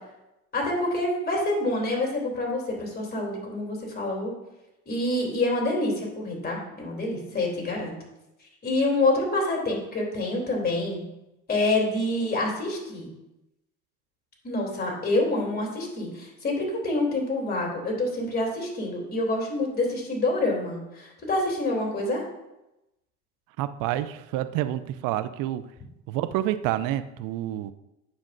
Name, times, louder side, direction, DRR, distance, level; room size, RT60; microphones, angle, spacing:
voice 1, 0.5-4.3 4.9-7.9 8.6-11.0 11.5-13.1 14.4-22.2, left 2 dB, 30° left, -1 dB, 3.0 m, -27 dB
voice 2, 23.6-25.6 26.1-27.7, right 13 dB, 75° right, 12 dB, 0.5 m, -28 dB
9.6 x 7.1 x 2.6 m, 0.92 s
cardioid pair, 110°, 32 cm